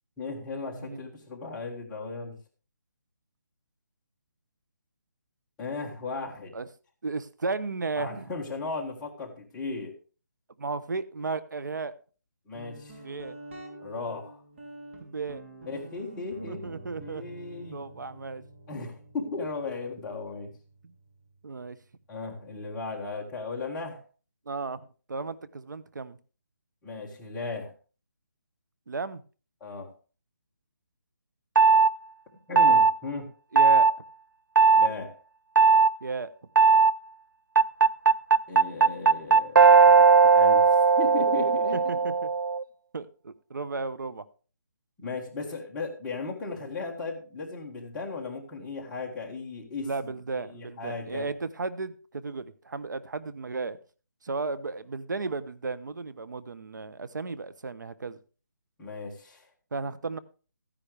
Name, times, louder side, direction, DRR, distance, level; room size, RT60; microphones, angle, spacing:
voice 1, 0.2-2.4 5.6-6.5 7.9-9.9 12.5-13.0 13.8-14.4 15.7-17.8 18.7-20.5 22.1-24.0 26.8-27.7 29.6-29.9 32.5-33.3 34.8-35.1 38.5-39.8 40.3-41.8 45.0-51.3 58.8-59.5, left 3 dB, 5° left, -4 dB, 1.6 m, -36 dB
voice 2, 7.0-8.3 10.6-11.9 13.0-13.4 15.0-15.4 16.5-17.2 17.7-18.4 21.4-21.8 24.5-24.8 25.1-26.2 28.9-29.2 33.5-33.9 36.0-36.3 39.8-40.0 41.7-42.3 42.9-44.2 49.8-53.8 54.2-58.2 59.7-60.2, right 3 dB, 70° right, 15 dB, 0.9 m, -34 dB
Guitar, 12.5-22.0, right 1 dB, 40° right, 3.0 m, -48 dB
sound 1, 31.6-31.9 32.6-32.9 33.6-33.9 34.6-34.9 35.6-35.9 36.6-36.9 37.6-42.6, right 5 dB, 90° right, 0.5 m, -18 dB
14.5 x 10.0 x 3.3 m, 0.36 s
hypercardioid pair, 175°, 10 cm